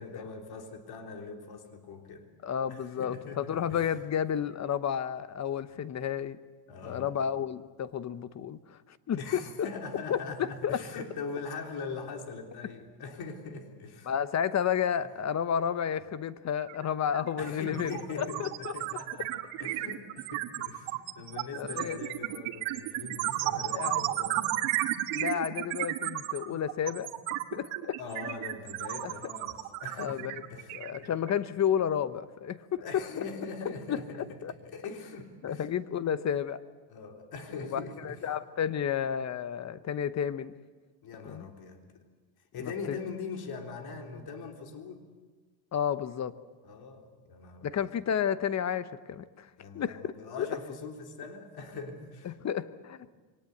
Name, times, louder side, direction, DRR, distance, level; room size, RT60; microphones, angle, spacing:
voice 1, 0.0-2.3 2.7-3.9 5.6-5.7 6.7-7.1 9.1-14.1 17.4-24.6 28.0-31.2 32.8-36.0 36.9-38.2 41.0-41.9 42.5-45.1 46.6-47.9 49.6-52.4, left 4 dB, 50° left, 3 dB, 3.5 m, -42 dB
voice 2, 2.4-6.4 6.8-9.4 10.1-10.2 10.6-10.8 14.1-17.9 18.2-18.7 21.5-22.0 23.7-24.1 25.1-27.1 27.5-28.0 29.0-29.1 30.0-30.4 30.7-33.0 33.6-34.0 34.4-34.5 35.4-36.6 37.7-40.5 41.2-41.5 42.6-43.0 45.7-46.3 47.6-49.5 49.7-50.5 52.2-53.1, left 8 dB, 35° left, 13 dB, 1.0 m, -31 dB
sound 1, 16.7-16.8 17.1-31.5, right 15 dB, 80° right, 1.7 m, -33 dB
23.5 x 19.0 x 8.1 m, 1.4 s
supercardioid pair, 105°, 46 cm